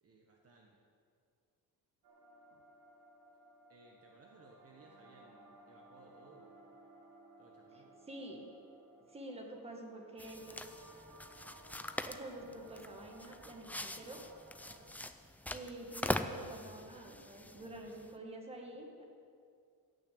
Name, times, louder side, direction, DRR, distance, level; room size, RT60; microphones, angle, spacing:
voice 1, 0.0-0.8 2.5-2.6 3.7-6.5 7.4-8.0 14.6-15.0 17.8-17.9, right 3 dB, 40° right, 0 dB, 1.3 m, -62 dB
sound 1, 2.0-14.9, right 2 dB, 70° right, 2.6 m, -60 dB
voice 2, 8.1-8.5 9.1-10.7 12.0-14.2 15.5-19.0, right 1 dB, 15° right, 1 dB, 1.8 m, -48 dB
sound 2, 10.2-18.1, left 1 dB, 5° left, 0.3 m, -43 dB
15.0 x 6.7 x 8.6 m, 2.3 s
cardioid pair, 155°, 39 cm